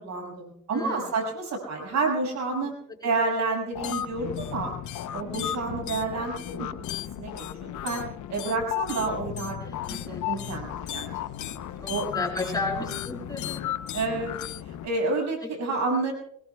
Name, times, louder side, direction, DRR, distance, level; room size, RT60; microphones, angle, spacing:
voice 1, 0.0-2.7 3.0-4.7 5.1-6.7 7.2-8.0 8.3-9.6 9.8-11.1 11.4-11.5 11.9-12.2 13.9-14.4 14.7-16.1, right 3 dB, 65° right, 1 dB, 6.3 m, -29 dB
voice 2, 0.7-1.1 3.0-3.1 9.6-10.4 11.8-13.7 15.7-15.8, left 2 dB, 15° left, -1 dB, 7.9 m, -34 dB
sound 1, 3.7-14.9, left 11 dB, 75° left, 0.9 m, -34 dB
23.5 x 21.5 x 2.3 m, 0.69 s
cardioid pair, 90°, 30 cm